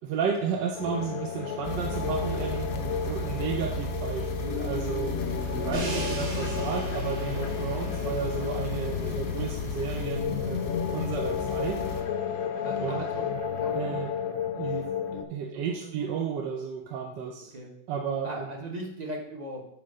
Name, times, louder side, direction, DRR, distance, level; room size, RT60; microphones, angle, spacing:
voice 1, 0.0-5.2 5.5-11.8 12.8-13.0 13.7-14.1 14.5-14.9 15.3-17.5 17.9-18.5, right 6 dB, 70° right, 2 dB, 1.2 m, -33 dB
sound 1, 0.7-15.2, left 7 dB, 75° left, 0.8 m, -33 dB
sound 2, 1.6-12.0, left 2 dB, 45° left, 1.1 m, -34 dB
Crash cymbal, 5.7-11.7, right 3 dB, 85° right, 2.7 m, -41 dB
voice 2, 12.6-13.3 13.6-14.1 15.8-16.2 17.5-17.7 18.2-19.6, right 1 dB, 25° right, 1 dB, 1.0 m, -39 dB
7.6 x 4.2 x 5.5 m, 0.75 s
omnidirectional pair, 2.2 m